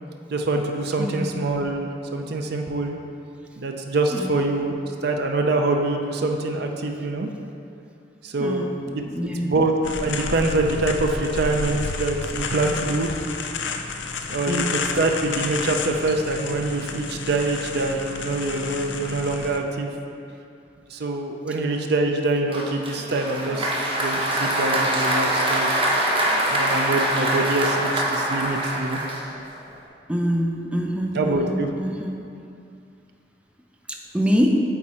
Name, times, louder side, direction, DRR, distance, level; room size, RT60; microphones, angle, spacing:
voice 1, 0.3-3.0 3.6-4.8 5.0-7.3 8.2-8.6 8.9-9.0 9.4-9.7 10.0-13.1 14.3-19.9 20.9-23.7 24.0-25.8 26.5-29.0 31.1-31.7, right 2 dB, 65° right, 3 dB, 0.5 m, -25 dB
voice 2, 1.0-1.4 4.1-4.4 8.4-8.8 9.1-9.6 14.5-14.9 30.1-32.2 33.9-34.5, equal, 5° right, 1 dB, 0.5 m, -25 dB
sound 1, 9.8-19.6, left 4 dB, 85° left, 0.5 m, -31 dB
Applause, 22.5-29.6, right 1 dB, 30° right, 0.9 m, -24 dB
8.5 x 3.7 x 4.3 m, 2.5 s
head